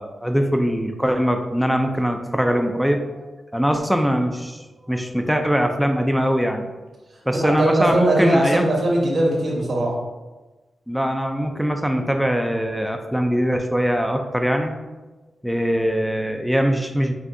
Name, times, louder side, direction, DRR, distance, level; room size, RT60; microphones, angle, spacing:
voice 1, 0.0-6.6 7.3-8.7 10.9-14.7 15.4-17.1, equal, ahead, 4 dB, 0.4 m, -22 dB
voice 2, 7.3-9.9, right 1 dB, 65° right, -2 dB, 1.3 m, -20 dB
6.0 x 2.4 x 2.6 m, 1.2 s
cardioid pair, 75°, 0 cm